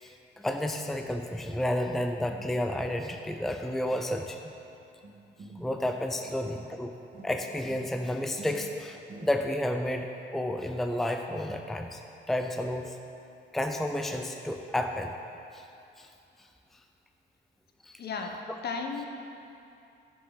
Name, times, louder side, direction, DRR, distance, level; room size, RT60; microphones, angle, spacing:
voice 1, 0.0-4.4 5.5-6.9 7.2-12.0 12.3-13.0 13.5-15.1 15.5-15.6 16.0-16.1 17.8-18.0, left 1 dB, ahead, 4 dB, 0.6 m, -31 dB
sound 1, 5.0-6.8 7.1-9.7, right 3 dB, 50° right, 2.0 m, -48 dB
voice 2, 18.0-18.3 18.6-19.1, left 5 dB, 55° left, 3 dB, 1.2 m, -33 dB
11.5 x 6.8 x 5.1 m, 2.7 s
cardioid pair, 90°, 20 cm